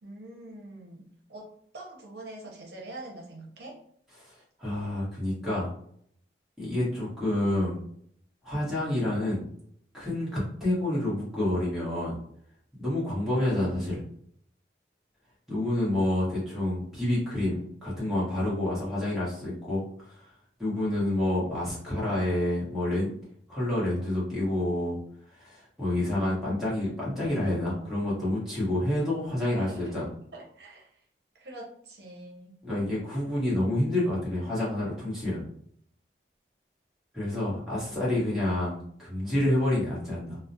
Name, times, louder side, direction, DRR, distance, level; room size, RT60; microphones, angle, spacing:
voice 1, 0.0-3.8 29.4-30.0 30.3-30.9 31.3-32.5, right 1 dB, 70° right, -2 dB, 0.6 m, -45 dB
voice 2, 4.6-5.7 6.6-7.8 8.4-9.4 9.9-12.2 12.8-14.0 15.5-20.1 20.6-23.1 23.5-25.0 25.3-30.1 32.6-35.4 37.1-40.4, left 1 dB, ahead, -9 dB, 1.0 m, -28 dB
2.3 x 2.0 x 2.6 m, 0.64 s
head